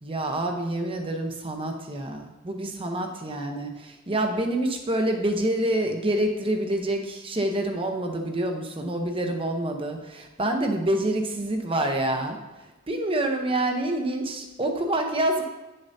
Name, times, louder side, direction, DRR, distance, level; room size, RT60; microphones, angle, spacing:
voice 1, 0.0-15.4, right 1 dB, 25° right, 4 dB, 0.8 m, -27 dB
9.6 x 6.6 x 2.7 m, 1.1 s
head